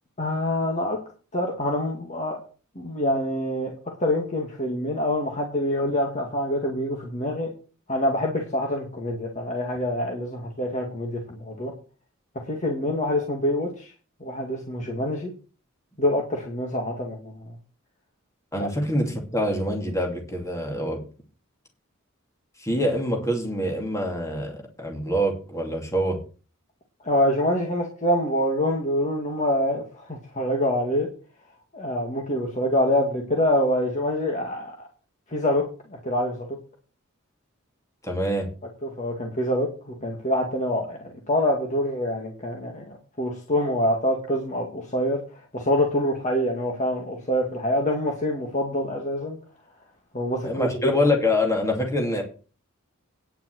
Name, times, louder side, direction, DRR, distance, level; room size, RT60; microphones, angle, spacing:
voice 1, 0.2-1.0 1.3-2.4 2.8-3.7 4.0-7.5 7.9-11.7 12.5-13.9 14.2-15.3 16.0-17.3 18.6-18.7 27.0-31.1 31.7-34.7 35.3-36.5 38.8-49.4 50.1-50.7, left 1 dB, 35° left, 1 dB, 2.1 m, -26 dB
voice 2, 18.5-21.0 22.6-26.2 38.0-38.5 50.4-52.2, left 1 dB, 15° left, 2 dB, 2.6 m, -25 dB
10.0 x 5.7 x 7.8 m, 0.36 s
head